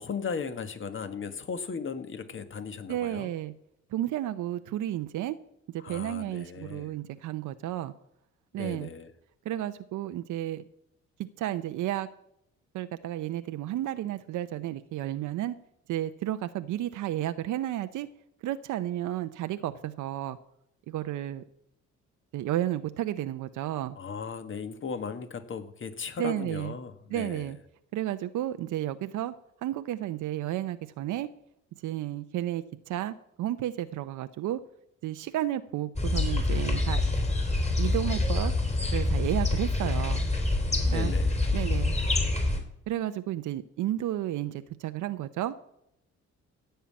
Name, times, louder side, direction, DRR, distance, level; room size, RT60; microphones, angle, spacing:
voice 1, 0.0-3.3 5.8-6.9 8.5-9.1 24.0-27.5 40.9-41.3, left 5 dB, 40° left, 10 dB, 1.6 m, -37 dB
voice 2, 2.9-3.5 3.9-5.4 5.7-7.9 8.5-8.9 9.4-10.7 11.4-12.1 12.7-15.6 15.9-18.1 18.4-20.4 20.9-21.4 22.3-24.0 26.2-26.7 27.1-27.6 27.9-29.3 29.6-31.3 31.8-34.6 35.0-37.0 37.8-38.5 38.9-40.2 40.9-41.1 41.5-41.9 42.9-45.5, right 13 dB, 80° right, 10 dB, 0.7 m, -32 dB
sound 1, 36.0-42.6, left 2 dB, 20° left, 3.4 m, -26 dB
16.0 x 5.7 x 8.7 m, 0.77 s
cardioid pair, 90°, 30 cm